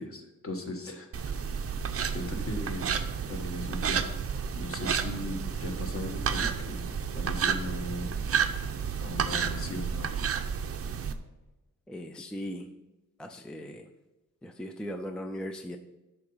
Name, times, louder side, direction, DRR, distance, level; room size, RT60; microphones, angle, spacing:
voice 1, 0.0-1.3 2.1-3.0 3.3-4.1 4.5-6.9 7.1-8.1 8.4-8.5 9.0-10.1, left 2 dB, 40° left, 3 dB, 1.3 m, -38 dB
sound 1, 1.1-11.1, right 7 dB, 45° right, 0.6 m, -31 dB
voice 2, 11.9-12.7 13.2-13.9 14.4-15.8, equal, 5° left, 5 dB, 0.4 m, -38 dB
11.0 x 4.0 x 5.5 m, 1.1 s
wide cardioid pair, 160°, 34 cm